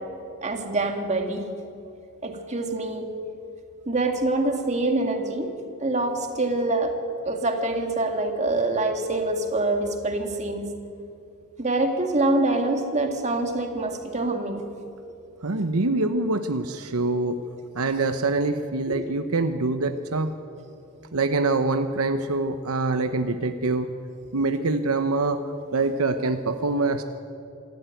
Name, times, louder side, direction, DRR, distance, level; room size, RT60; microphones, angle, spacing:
voice 1, 0.4-1.5 2.2-3.1 3.9-5.5 5.8-6.9 7.2-10.7 11.6-14.6 18.9-19.1, right 2 dB, 30° right, 4 dB, 2.2 m, -25 dB
voice 2, 15.4-17.4 17.7-20.3 21.1-23.9 24.3-27.0, right 3 dB, 75° right, 9 dB, 0.9 m, -25 dB
26.5 x 13.0 x 9.2 m, 2.7 s
head